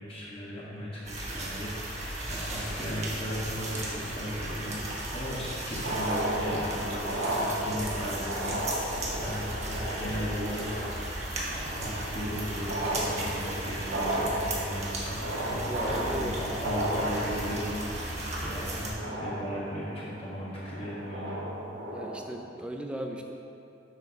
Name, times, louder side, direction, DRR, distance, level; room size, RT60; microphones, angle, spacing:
voice 1, 0.0-4.8 5.1-21.4, equal, 30° left, -8 dB, 1.4 m, -37 dB
sound 1, 1.0-18.9, right 1 dB, 40° right, 1.4 m, -36 dB
sound 2, 3.2-4.3 5.5-5.6 5.7-22.2, right 1 dB, 90° right, 1.3 m, -35 dB
voice 2, 15.7-16.4 21.9-23.2, right 1 dB, 5° right, 2 dB, 0.5 m, -36 dB
8.0 x 4.6 x 5.7 m, 2.6 s
head